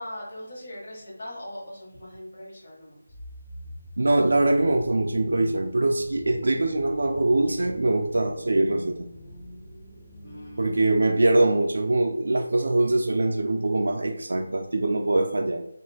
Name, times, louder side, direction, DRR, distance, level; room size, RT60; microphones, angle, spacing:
voice 1, 0.0-3.0 10.2-10.8, left 1 dB, 40° left, -5 dB, 1.1 m, -40 dB
sound 1, 3.1-10.7, left 1 dB, 10° left, 0.3 m, -44 dB
voice 2, 4.0-9.1 10.6-15.7, right 2 dB, 70° right, 3 dB, 0.3 m, -23 dB
2.9 x 2.4 x 3.2 m, 0.80 s
figure-of-eight pair, 175°, 0 cm